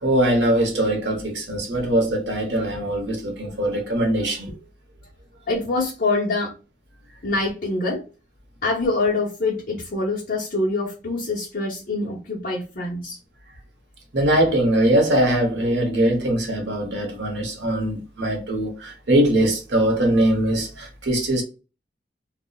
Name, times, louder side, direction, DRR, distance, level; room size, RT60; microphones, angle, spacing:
voice 1, 0.0-4.5 14.1-21.4, right 1 dB, 80° right, 0.8 m, -21 dB
voice 2, 5.5-6.5 7.2-8.0 8.6-13.2, left 2 dB, 50° left, 0.7 m, -25 dB
2.6 x 2.0 x 2.2 m
head